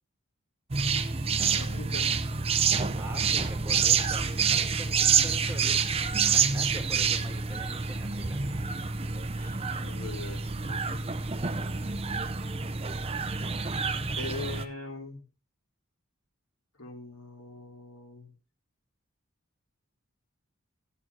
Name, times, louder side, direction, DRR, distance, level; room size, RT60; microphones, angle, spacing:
sound 1, 0.7-14.6, right 6 dB, 30° right, 0.6 m, -28 dB
voice 1, 1.5-2.1 9.3-11.0 14.1-15.2 16.7-18.3, left 2 dB, 90° left, 2 dB, 2.6 m, -41 dB
voice 2, 3.0-5.8 6.1-8.4, right 1 dB, 15° right, 1 dB, 2.2 m, -44 dB
14.0 x 8.5 x 2.8 m, 0.31 s
head